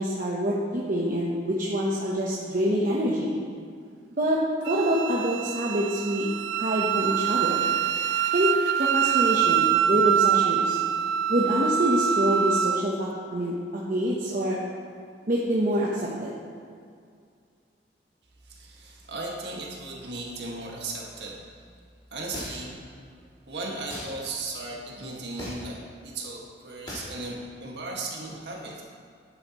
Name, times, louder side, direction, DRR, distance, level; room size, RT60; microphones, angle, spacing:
voice 1, 0.0-3.3 4.2-6.3 6.6-7.6 8.3-8.5 8.8-10.8 11.3-14.6 15.3-16.3, right 1 dB, 50° right, -5 dB, 1.0 m, -26 dB
Wind instrument woodwind instrument, 4.6-12.8, right 9 dB, 85° right, 0.3 m, -25 dB
voice 2, 18.5-21.4 22.1-22.7 23.5-28.8, right 2 dB, 70° right, -3 dB, 1.9 m, -36 dB
sound 1, 22.3-22.8 23.9-24.1 25.4-25.7 26.9-27.1, left 1 dB, 25° left, 2.7 m, -37 dB
12.0 x 8.9 x 3.1 m, 2.3 s
head